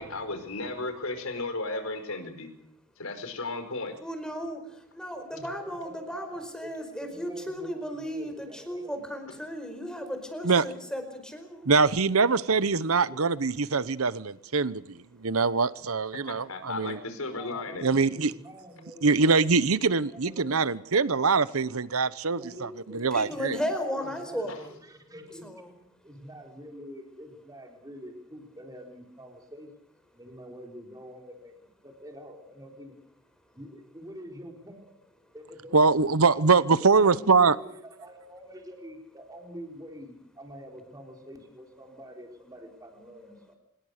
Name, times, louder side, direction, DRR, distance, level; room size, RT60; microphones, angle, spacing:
voice 1, 0.0-2.5 3.0-3.9 16.3-17.9, left 2 dB, 80° left, 8 dB, 5.3 m, -34 dB
voice 2, 4.0-11.7 23.1-24.8 25.4-25.7, equal, 5° left, 6 dB, 4.9 m, -35 dB
voice 3, 5.3-6.7 7.0-9.0 13.0-13.3 17.3-19.4 20.1-21.3 22.4-25.5 26.0-29.7 30.1-32.9 33.5-34.9 35.3-36.0 36.8-43.5, equal, 15° right, 3 dB, 4.2 m, -46 dB
voice 4, 11.7-17.0 17.8-18.3 19.0-23.6 35.7-37.6, right 4 dB, 90° right, 17 dB, 0.9 m, -23 dB
26.5 x 21.5 x 6.6 m, 0.72 s
head